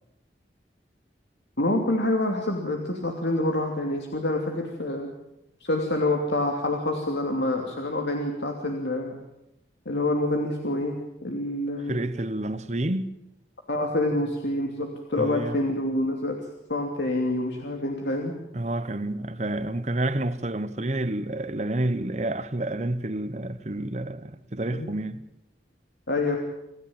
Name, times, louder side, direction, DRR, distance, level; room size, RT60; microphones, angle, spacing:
voice 1, 1.6-5.1 5.6-9.2 9.8-12.0 13.7-16.4 16.7-18.3 24.7-24.9 26.1-26.4, left 1 dB, 75° left, 3.0 m, -27 dB
voice 2, 11.9-13.2 15.2-15.6 18.5-25.2, right 1 dB, 40° right, 1.1 m, -29 dB
28.0 x 15.0 x 8.9 m
head